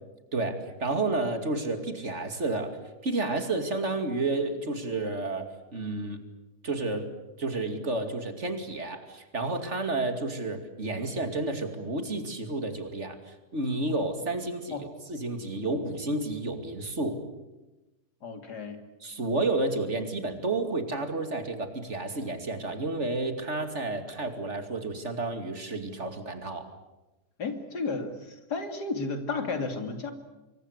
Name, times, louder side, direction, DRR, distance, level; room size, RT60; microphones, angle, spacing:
voice 1, 0.3-2.8 3.0-6.2 6.6-7.1 7.4-17.2 19.0-26.7, right 2 dB, 45° right, 7 dB, 2.8 m, -31 dB
voice 2, 18.2-18.8 27.4-30.1, left 4 dB, 85° left, 7 dB, 3.3 m, -33 dB
26.0 x 23.5 x 8.2 m, 1.0 s
omnidirectional pair, 1.7 m